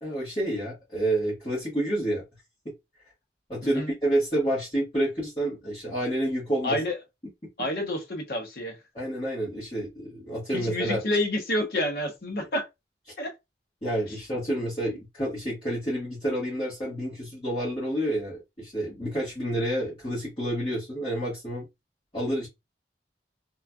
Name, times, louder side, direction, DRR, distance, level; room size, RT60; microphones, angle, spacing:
voice 1, 0.0-2.2 3.5-6.8 8.9-11.0 13.8-21.7 22.1-22.5, right 1 dB, 30° left, 1.3 m, -29 dB
voice 2, 3.6-3.9 6.6-7.0 7.6-8.8 10.5-12.6 13.2-13.3, left 1 dB, 55° left, 0.8 m, -28 dB
3.0 x 2.5 x 2.2 m
head